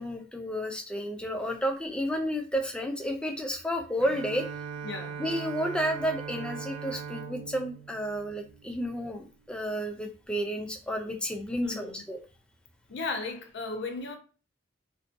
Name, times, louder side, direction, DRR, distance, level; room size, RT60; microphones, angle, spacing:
voice 1, 0.0-4.5 5.2-12.2, equal, 5° left, 0.3 m, -31 dB
Bowed string instrument, 4.0-9.3, right 6 dB, 75° right, 0.4 m, -40 dB
voice 2, 4.8-5.2 11.6-12.1 12.9-14.2, left 3 dB, 65° left, 0.6 m, -35 dB
2.6 x 2.1 x 2.5 m
head